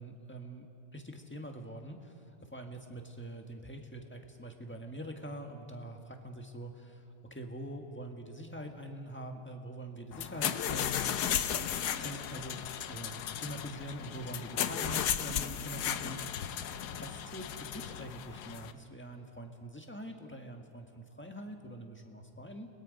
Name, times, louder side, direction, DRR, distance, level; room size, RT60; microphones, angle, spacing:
voice 1, 0.0-2.1 2.5-7.0 7.3-11.0 12.0-12.6 12.9-16.4 16.9-22.7, equal, 5° left, 3 dB, 1.3 m, -44 dB
sound 1, 10.1-18.7, left 9 dB, 70° left, 1.3 m, -35 dB
30.0 x 21.0 x 5.3 m, 3.0 s
omnidirectional pair, 2.0 m